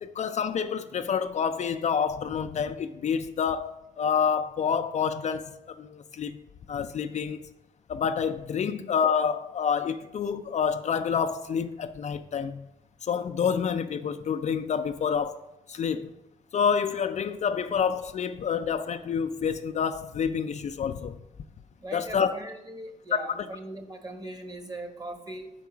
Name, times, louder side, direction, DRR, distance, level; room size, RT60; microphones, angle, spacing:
voice 1, 0.0-6.4 6.7-7.4 7.9-12.7 13.0-15.4 15.7-16.1 16.5-21.2 21.9-22.3 23.1-23.5, left 7 dB, 50° left, 0.4 m, -28 dB
voice 2, 21.8-25.5, right 1 dB, 25° right, 1.2 m, -40 dB
4.7 x 4.6 x 5.9 m
supercardioid pair, 60°, 15 cm